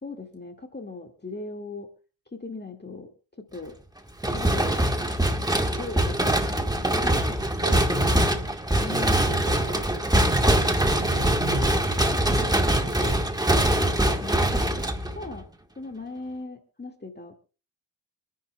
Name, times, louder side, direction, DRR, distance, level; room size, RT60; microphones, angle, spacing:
voice 1, 0.0-1.9 2.3-3.1 3.4-3.7 4.3-4.9 5.8-7.4 8.8-9.4 14.2-14.8 15.1-15.5 15.8-17.3, left 3 dB, 20° left, 2.0 m, -38 dB
sound 1, 4.2-15.4, right 1 dB, 10° right, 1.4 m, -23 dB
voice 2, 7.6-8.3 8.9-10.0 10.3-11.9 12.2-13.3, right 2 dB, 45° right, 5.4 m, -37 dB
27.0 x 10.5 x 2.3 m
cardioid pair, 75°, 48 cm